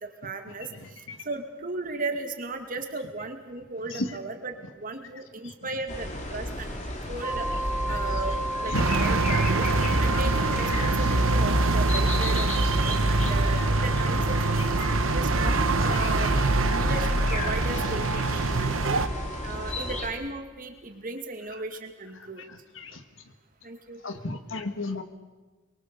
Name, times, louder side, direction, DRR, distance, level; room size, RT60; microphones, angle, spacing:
voice 1, 0.0-6.7 7.1-7.5 7.9-9.7 10.0-12.5 12.7-14.8 15.1-16.3 16.7-19.0 19.4-22.4 23.6-24.0, right 3 dB, 45° right, 5 dB, 2.4 m, -36 dB
voice 2, 0.7-1.3 3.9-4.2 5.4-5.5 7.5-7.6 7.9-8.2 8.7-9.0 13.2-13.7 14.6-15.2 15.7-16.5 18.9-19.0 22.2-23.0 24.0-25.0, left 2 dB, 70° left, 8 dB, 1.9 m, -36 dB
sound 1, 5.9-20.1, equal, 35° left, 3.1 m, -31 dB
sound 2, 7.2-20.0, right 1 dB, 15° right, 2.9 m, -36 dB
sound 3, 8.7-19.1, right 3 dB, 80° right, 1.1 m, -25 dB
23.5 x 23.0 x 7.0 m, 1.2 s
head